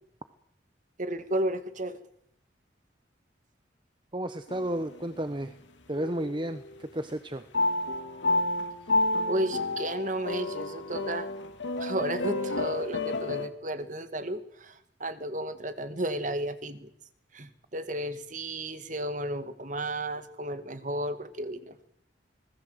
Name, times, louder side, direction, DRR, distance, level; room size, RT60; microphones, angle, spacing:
voice 1, 1.0-2.0 9.3-11.3 11.8-16.9 17.3-21.7, right 1 dB, 45° right, 10 dB, 2.0 m, -33 dB
voice 2, 4.1-5.5 5.9-7.4, right 1 dB, 25° right, 10 dB, 1.1 m, -32 dB
sound 1, 4.5-5.2 6.0-6.6 7.5-13.5, left 2 dB, 85° left, 2.5 m, -30 dB
26.0 x 19.5 x 8.1 m, 0.74 s
head